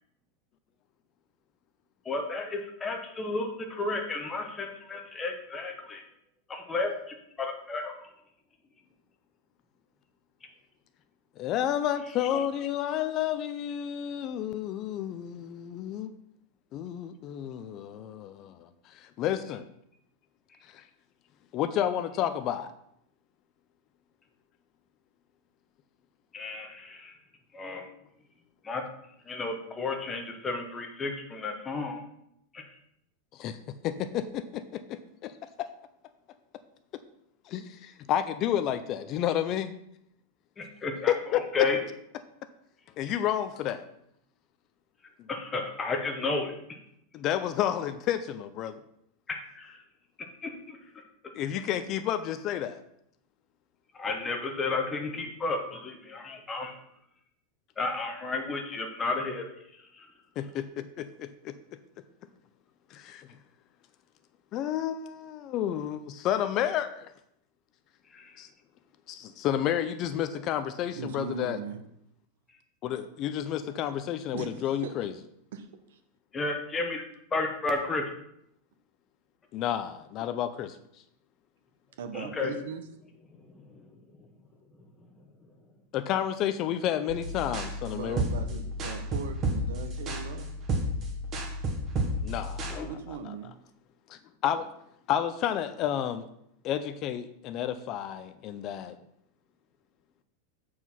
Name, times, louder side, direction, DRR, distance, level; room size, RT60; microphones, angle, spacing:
voice 1, 2.1-6.0 6.5-8.0 26.3-27.1 27.5-27.9 28.6-28.8 29.3-32.0 32.5-32.6 40.6-41.1 41.5-41.8 45.3-46.5 49.5-49.8 50.4-50.8 54.0-56.7 57.8-59.5 68.1-68.3 76.3-77.0 77.3-78.1 82.1-82.5 92.7-92.9, left 3 dB, 10° left, 3 dB, 0.9 m, -32 dB
voice 2, 11.4-16.1 16.7-19.7 20.7-20.8 21.5-22.7 33.3-33.6 33.8-35.3 37.5-39.7 41.1-41.4 43.0-43.8 47.1-48.8 51.3-52.8 60.4-61.5 62.9-63.3 64.5-67.1 68.4-68.5 69.1-71.6 72.8-75.1 79.5-80.8 85.9-88.2 92.2-93.3 94.1-94.7 95.1-96.2 96.6-99.0, left 10 dB, 30° left, 11 dB, 0.4 m, -31 dB
voice 3, 71.0-71.8 74.3-74.5 74.8-74.9 75.5-76.0 82.0-82.9 87.9-90.6 92.8-93.5, right 6 dB, 70° right, 8 dB, 1.1 m, -39 dB
sound 1, 87.1-92.8, right 1 dB, 20° right, 1.0 m, -32 dB
8.0 x 4.6 x 5.6 m, 0.74 s
supercardioid pair, 175°, 0 cm